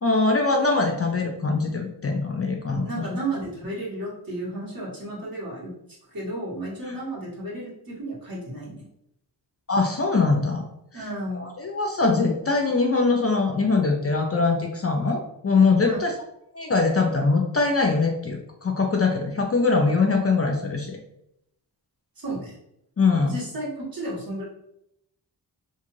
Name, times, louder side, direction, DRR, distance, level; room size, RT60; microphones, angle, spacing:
voice 1, 0.0-2.9 9.7-10.6 11.4-16.1 16.5-21.0 23.0-23.3, left 3 dB, 35° left, 2 dB, 0.4 m, -22 dB
voice 2, 2.8-5.7 6.1-8.8 10.9-11.5 15.8-16.0 22.2-22.5 23.1-24.5, right 1 dB, 50° right, -5 dB, 1.3 m, -33 dB
2.5 x 2.4 x 3.0 m, 0.79 s
cardioid pair, 60°, 43 cm